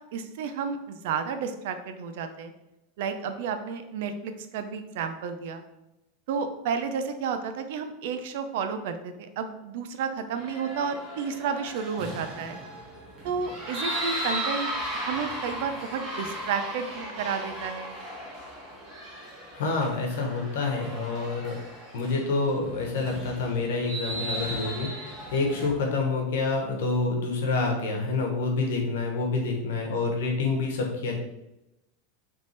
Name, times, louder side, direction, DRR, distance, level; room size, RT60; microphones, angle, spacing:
voice 1, 0.1-2.5 3.0-5.6 6.3-12.6 13.2-14.7 15.0-17.9, right 6 dB, 55° right, 8 dB, 0.4 m, -31 dB
sound 1, 10.3-25.7, right 1 dB, 20° right, 1.1 m, -36 dB
voice 2, 19.5-21.6 21.9-31.2, left 3 dB, 85° left, 1 dB, 1.1 m, -27 dB
3.3 x 3.3 x 4.1 m, 0.92 s
supercardioid pair, 180°, 0 cm